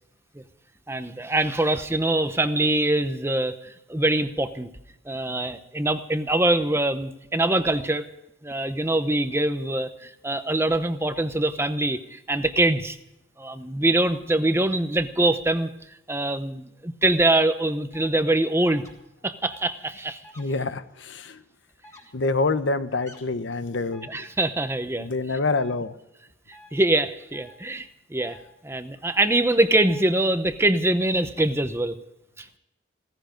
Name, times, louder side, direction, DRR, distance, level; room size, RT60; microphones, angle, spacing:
voice 1, 0.9-4.7 5.1-8.0 8.4-13.0 13.4-15.7 16.1-18.8 19.2-20.2 24.1-25.4 26.7-28.4 28.6-32.0 32.4-32.5, right 1 dB, 10° right, 10 dB, 0.8 m, -24 dB
sound 1, 17.9-18.1 18.7-18.9 19.5-19.7 20.2-20.4 21.8-22.0 23.0-23.2 23.9-24.1 25.5-25.8 26.5-26.7 27.3-27.6 28.2-28.4 29.2-29.4 29.9-30.0, equal, 15° left, 3.4 m, -48 dB
voice 2, 20.4-21.4 22.1-24.1 25.0-25.9, left 3 dB, 65° left, 12 dB, 0.9 m, -26 dB
17.0 x 15.0 x 5.2 m, 0.87 s
head